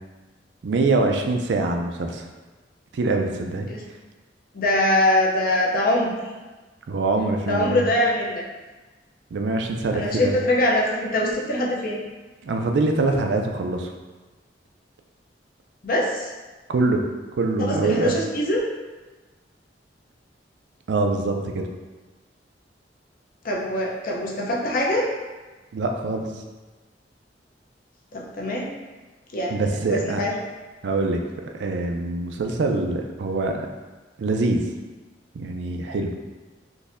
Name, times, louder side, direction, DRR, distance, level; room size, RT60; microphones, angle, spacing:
voice 1, 0.6-2.3 2.9-3.7 6.9-7.9 9.3-10.4 12.4-13.9 16.7-17.0 17.3-18.1 20.9-21.7 25.7-26.4 29.5-30.2 30.8-33.7 34.2-34.7 35.3-36.1, right 3 dB, 70° right, 3 dB, 0.4 m, -24 dB
voice 2, 4.5-6.1 7.4-8.4 9.9-12.0 15.8-16.3 17.6-18.6 23.4-25.1 28.1-28.7 29.3-30.3, left 1 dB, 55° left, -2 dB, 0.6 m, -23 dB
3.8 x 2.6 x 2.5 m, 1.2 s
head